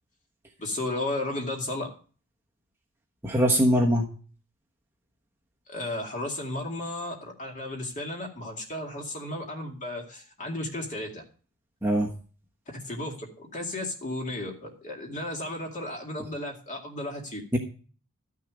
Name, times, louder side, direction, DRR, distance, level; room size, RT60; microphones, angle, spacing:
voice 1, 0.6-1.9 5.7-11.2 12.8-17.4, left 1 dB, 35° left, 1 dB, 2.3 m, -34 dB
voice 2, 3.2-4.0 11.8-12.1 17.5-17.6, equal, 10° right, -1 dB, 1.2 m, -22 dB
12.5 x 6.5 x 5.0 m, 0.39 s
head